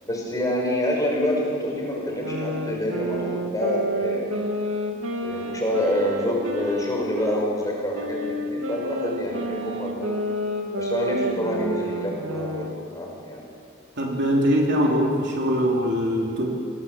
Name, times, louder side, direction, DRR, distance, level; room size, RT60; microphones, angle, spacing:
voice 1, 0.0-4.4 5.2-10.2 10.8-13.4, left 1 dB, 15° left, -2 dB, 5.6 m, -27 dB
sound 1, 2.0-7.4 7.9-12.8, right 1 dB, 80° right, 2.1 m, -30 dB
voice 2, 14.0-16.5, equal, 60° right, 0 dB, 3.2 m, -22 dB
22.0 x 18.0 x 7.5 m, 2.3 s
head